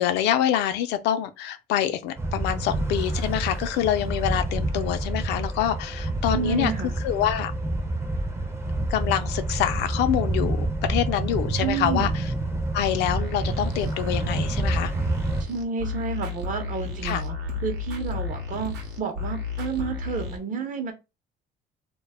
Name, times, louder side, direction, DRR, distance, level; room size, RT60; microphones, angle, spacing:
voice 1, 0.0-6.7 7.0-7.5 8.9-12.2 12.7-14.9 17.0-17.2, left 11 dB, 85° left, 0.4 m, -26 dB
sound 1, 2.2-15.4, right 2 dB, 15° right, 0.5 m, -28 dB
voice 2, 6.3-6.9 11.6-12.1 15.4-17.3 17.6-20.9, right 5 dB, 50° right, 0.7 m, -30 dB
sound 2, 12.9-20.4, left 4 dB, 85° right, 0.8 m, -34 dB
2.2 x 2.0 x 3.3 m
cardioid pair, 110°, 17 cm